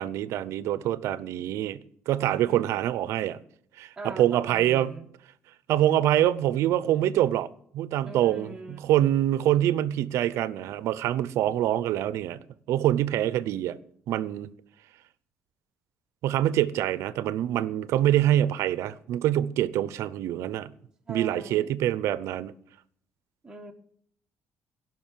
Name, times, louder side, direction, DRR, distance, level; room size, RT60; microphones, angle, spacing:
voice 1, 0.0-1.8 2.1-3.4 3.8-4.9 5.7-13.8 14.1-14.5 16.2-20.7 21.1-22.5, right 12 dB, 80° right, 0.7 m, -25 dB
voice 2, 2.5-2.8 4.0-5.1 8.0-8.8 21.1-21.8 23.4-23.7, right 2 dB, 10° right, 1.5 m, -41 dB
17.0 x 5.9 x 7.5 m
cardioid pair, 130°, 5 cm